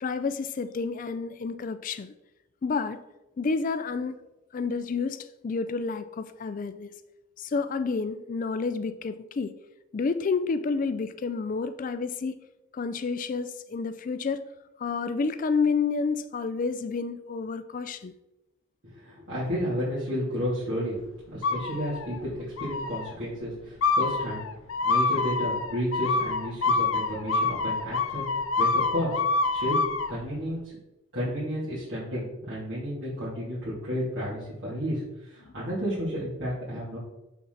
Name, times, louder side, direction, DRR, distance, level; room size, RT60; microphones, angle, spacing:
voice 1, 0.0-2.1 2.6-3.0 3.4-4.2 4.5-6.9 7.4-9.6 9.9-12.4 12.7-14.4 14.8-18.1 35.4-35.5, left 4 dB, 40° left, 0.4 m, -29 dB
voice 2, 18.8-21.0 21.3-24.4 24.8-28.2 28.6-29.1 29.5-29.8 30.1-30.6 31.1-37.0, equal, 60° right, 2.8 m, -32 dB
sound 1, 21.4-22.2 22.6-23.1 23.8-30.1, left 3 dB, 90° left, 0.6 m, -26 dB
7.0 x 5.8 x 4.0 m
head